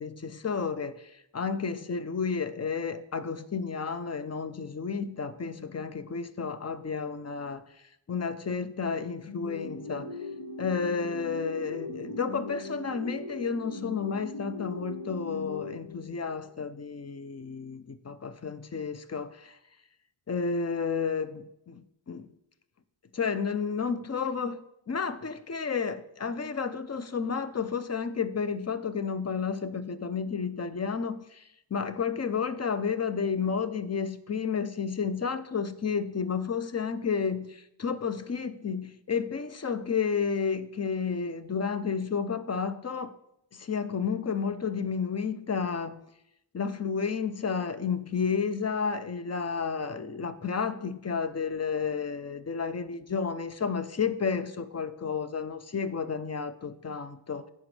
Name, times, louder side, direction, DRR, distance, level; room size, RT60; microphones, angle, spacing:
voice 1, 0.0-7.6 8.1-10.1 10.6-19.6 20.3-22.3 23.1-24.6 24.9-43.1 43.5-46.0 46.5-57.5, left 5 dB, 30° left, 0.6 m, -31 dB
sound 1, 9.3-16.4, left 2 dB, 60° left, 1.1 m, -39 dB
15.5 x 5.2 x 3.3 m
wide cardioid pair, 60°, 49 cm